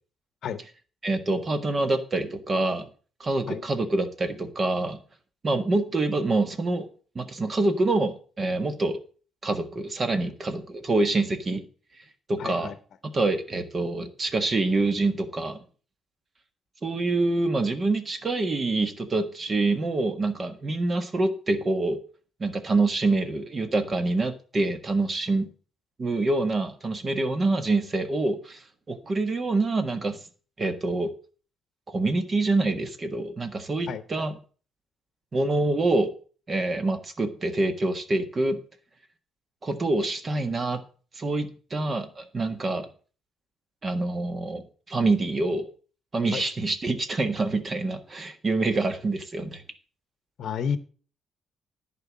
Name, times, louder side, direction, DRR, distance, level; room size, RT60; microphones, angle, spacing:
voice 1, 1.0-2.9 3.2-5.0 5.4-6.9 7.1-9.0 9.4-11.6 12.3-12.7 13.0-15.6 16.8-22.0 22.4-25.5 26.0-30.2 30.6-31.1 31.9-34.3 35.3-36.1 36.5-38.6 39.6-40.8 41.1-42.9 43.8-45.7 46.1-49.6, right 2 dB, 35° right, 8 dB, 1.5 m, -26 dB
voice 2, 12.4-12.8 33.9-34.0 46.3-46.4 50.4-50.8, left 7 dB, 65° left, 13 dB, 0.8 m, -30 dB
10.5 x 4.6 x 7.3 m, 0.40 s
cardioid pair, 90°, 0 cm